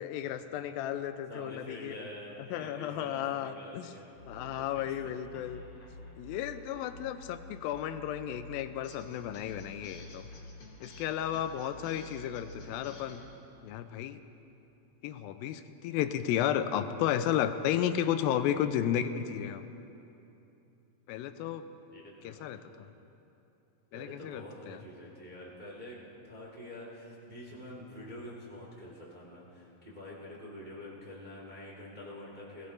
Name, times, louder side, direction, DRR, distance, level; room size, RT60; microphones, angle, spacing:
voice 1, 0.0-2.1 2.4-3.9 4.3-5.6 6.2-10.3 10.8-13.2 13.6-14.2 15.0-19.6 21.1-21.7 22.2-22.9 23.9-24.8, left 10 dB, 90° left, 10 dB, 2.4 m, -33 dB
voice 2, 1.3-4.1 4.4-5.2 21.3-21.4 21.9-22.5 23.9-26.0 26.2-32.7, left 1 dB, 20° right, -4 dB, 1.2 m, -47 dB
sound 1, 4.2-13.3, left 2 dB, 45° left, 2.3 m, -49 dB
20.5 x 16.0 x 3.2 m, 2.9 s
omnidirectional pair, 4.1 m